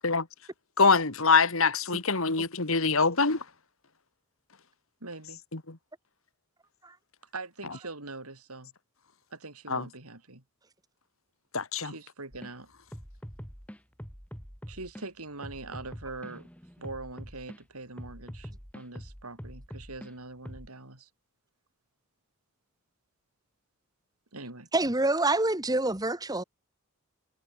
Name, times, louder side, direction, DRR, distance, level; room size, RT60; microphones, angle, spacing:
voice 1, 0.8-3.5 5.5-5.8 9.7-9.9 11.5-11.9, left 4 dB, 70° left, 2.4 m, -24 dB
voice 2, 5.0-5.4 7.3-8.7 9.3-10.4 11.8-12.7 14.7-16.5 16.8-21.1 24.3-24.7, right 3 dB, 90° right, 5.1 m, -42 dB
sound 1, 12.3-12.6 12.9-15.1 15.4-17.6 18.0-20.1 20.5-20.7, equal, 5° left, 7.9 m, -44 dB
voice 3, 24.7-26.4, right 2 dB, 15° right, 1.6 m, -26 dB
head